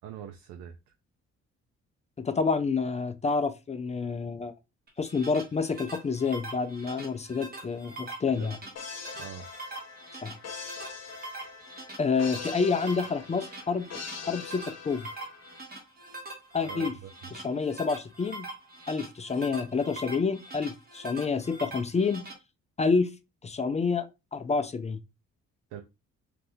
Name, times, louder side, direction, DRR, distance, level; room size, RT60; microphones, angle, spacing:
voice 1, 0.0-0.7 8.4-8.5 9.2-9.5 16.6-17.1 25.7-25.8, right 8 dB, 90° right, 0.5 m, -42 dB
voice 2, 2.2-4.5 5.0-8.6 10.2-10.3 12.0-13.9 14.2-15.1 16.5-16.9 17.3-18.5 18.9-22.3 22.8-23.1 23.4-24.1 24.3-25.0, left 4 dB, 25° left, 0.4 m, -28 dB
sound 1, 4.9-22.3, right 2 dB, 30° right, 1.2 m, -43 dB
sound 2, 8.8-15.6, left 6 dB, 55° left, 0.9 m, -43 dB
2.6 x 2.4 x 3.4 m
cardioid pair, 90°, 30 cm